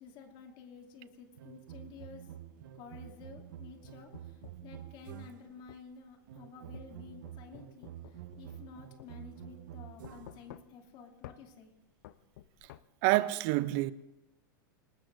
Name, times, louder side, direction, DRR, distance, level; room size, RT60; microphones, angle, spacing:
voice 1, 0.0-2.3 2.7-11.7, left 6 dB, 45° left, 2.7 m, -52 dB
sound 1, 1.4-5.6 6.3-10.5, right 11 dB, 70° right, 1.2 m, -48 dB
sound 2, 3.3-4.7 5.7-5.9 6.7-8.7 9.0-9.1 10.0-10.9 11.2-11.4 12.0-12.8, left 13 dB, 65° left, 0.7 m, -52 dB
voice 2, 13.0-13.9, right 19 dB, 55° right, 0.6 m, -27 dB
26.0 x 20.5 x 2.6 m
hypercardioid pair, 100°, 11 cm